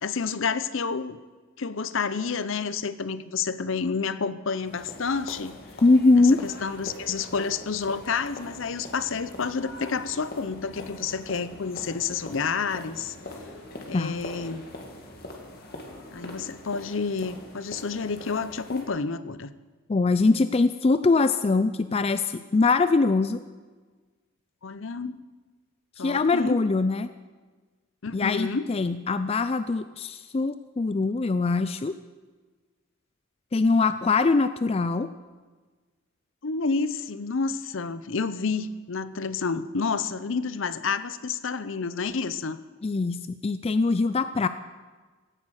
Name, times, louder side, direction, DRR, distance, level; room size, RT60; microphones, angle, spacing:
voice 1, 0.0-1.2 1.6-5.6 6.1-13.1 13.9-14.6 16.1-19.5 24.6-25.2 26.0-26.6 28.0-28.7 36.4-42.6, left 5 dB, 60° left, 14 dB, 0.7 m, -29 dB
sound 1, 4.6-18.8, left 1 dB, 45° left, 2.2 m, -42 dB
voice 2, 5.8-6.5 13.9-14.2 19.9-23.4 26.0-27.1 28.1-32.0 33.5-35.1 42.8-44.5, left 3 dB, 30° left, 12 dB, 0.4 m, -22 dB
16.5 x 10.5 x 6.4 m, 1.4 s
head